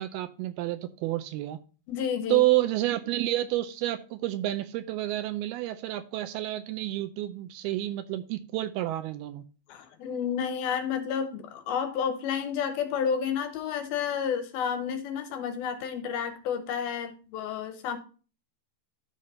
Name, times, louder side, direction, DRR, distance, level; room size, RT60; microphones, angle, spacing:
voice 1, 0.0-1.6 2.3-9.4, right 16 dB, 85° right, 10 dB, 2.3 m, -29 dB
voice 2, 1.9-2.4 9.7-18.0, left 7 dB, 75° left, 8 dB, 2.5 m, -31 dB
12.5 x 5.7 x 2.7 m, 0.36 s
omnidirectional pair, 4.7 m